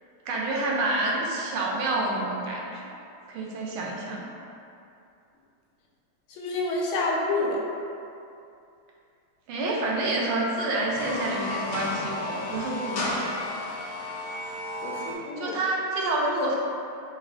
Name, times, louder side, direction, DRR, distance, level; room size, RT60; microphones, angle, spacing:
voice 1, 0.3-2.7 3.3-4.3 9.5-13.0 15.4-16.5, right 2 dB, 80° right, -3 dB, 1.4 m, -28 dB
voice 2, 6.4-7.6 14.8-15.6, left 2 dB, 80° left, -3 dB, 1.5 m, -28 dB
sound 1, 10.8-15.2, left 2 dB, 60° left, 1.0 m, -33 dB
5.0 x 2.6 x 2.4 m, 2.6 s
omnidirectional pair, 2.3 m